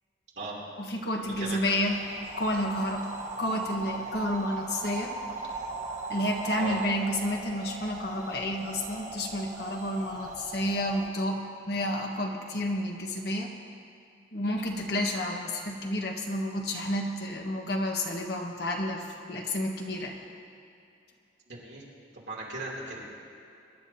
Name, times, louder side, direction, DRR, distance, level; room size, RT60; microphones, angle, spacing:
voice 1, 0.8-2.0 2.4-3.1 3.4-5.1 6.1-11.4 11.7-13.5 14.3-20.1, left 1 dB, 60° left, 1 dB, 1.4 m, -30 dB
sound 1, 1.2-11.1, right 3 dB, 40° right, 1.2 m, -39 dB
voice 2, 21.5-21.8 22.1-23.1, right 2 dB, 60° right, -5 dB, 3.2 m, -37 dB
23.5 x 11.5 x 2.9 m, 2.6 s
head